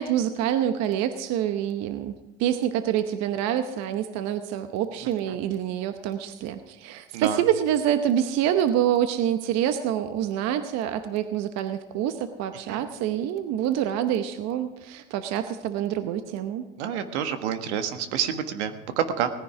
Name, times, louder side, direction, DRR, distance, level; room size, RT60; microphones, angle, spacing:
voice 1, 0.0-2.1 2.4-16.6, right 10 dB, 50° right, 9 dB, 1.0 m, -26 dB
voice 2, 16.8-19.3, right 8 dB, 80° right, 8 dB, 1.5 m, -28 dB
18.0 x 10.0 x 5.0 m, 1.1 s
supercardioid pair, 110°, 34 cm